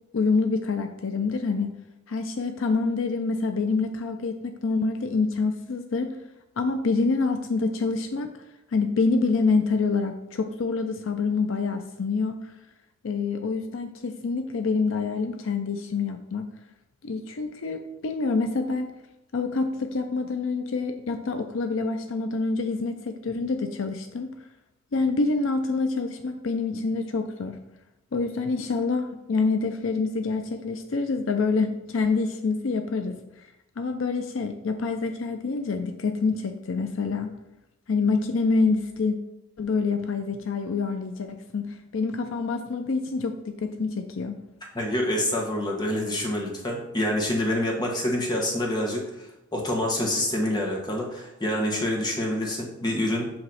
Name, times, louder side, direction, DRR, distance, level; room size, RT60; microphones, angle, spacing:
voice 1, 0.1-1.7 2.1-6.1 6.6-8.3 8.7-12.5 13.0-16.5 17.0-18.9 19.3-24.3 24.9-27.6 28.1-33.5 33.8-37.3 37.9-39.2 39.6-44.4, left 4 dB, 70° left, 6 dB, 0.5 m, -26 dB
voice 2, 44.7-53.3, left 1 dB, 20° left, -1 dB, 1.3 m, -27 dB
7.8 x 3.1 x 5.7 m, 0.91 s
head